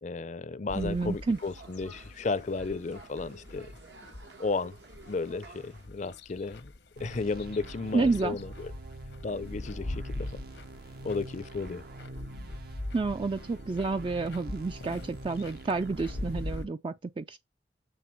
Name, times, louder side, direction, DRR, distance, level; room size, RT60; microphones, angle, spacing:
voice 1, 0.0-3.7 4.4-4.8 5.1-6.7 7.0-8.7 9.2-10.4 11.0-11.8, left 3 dB, 40° left, 0.5 m, -34 dB
sound 1, 0.7-16.7, left 1 dB, 85° left, 1.0 m, -43 dB
sound 2, 0.7-5.9, right 3 dB, 80° right, 1.5 m, -53 dB
voice 2, 0.8-1.4 7.9-8.4 12.9-17.4, right 3 dB, 30° right, 0.3 m, -30 dB
sound 3, 7.0-16.6, right 2 dB, 60° right, 0.7 m, -45 dB
7.6 x 3.8 x 4.5 m
head